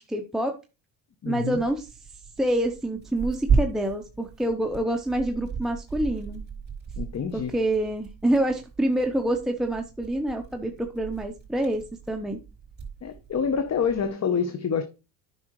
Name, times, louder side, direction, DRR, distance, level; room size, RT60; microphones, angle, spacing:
voice 1, 0.1-0.5 1.2-1.9 2.4-6.5 7.3-12.4, right 1 dB, ahead, 0.9 m, -27 dB
voice 2, 1.2-1.6 7.0-7.5 13.0-14.8, left 6 dB, 30° left, 0.9 m, -27 dB
Tearing, 1.5-14.1, right 5 dB, 20° right, 3.4 m, -34 dB
9.5 x 5.8 x 3.2 m
hypercardioid pair, 70°, 50 cm